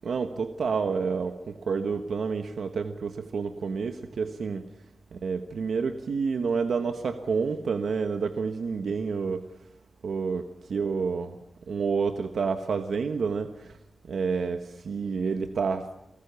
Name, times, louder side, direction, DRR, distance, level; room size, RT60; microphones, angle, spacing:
voice 1, 0.0-4.7 5.1-9.4 10.0-11.4 11.7-13.8 14.1-15.9, right 5 dB, 90° right, 7 dB, 1.3 m, -29 dB
29.5 x 19.0 x 7.0 m, 0.82 s
wide cardioid pair, 170°, 0 cm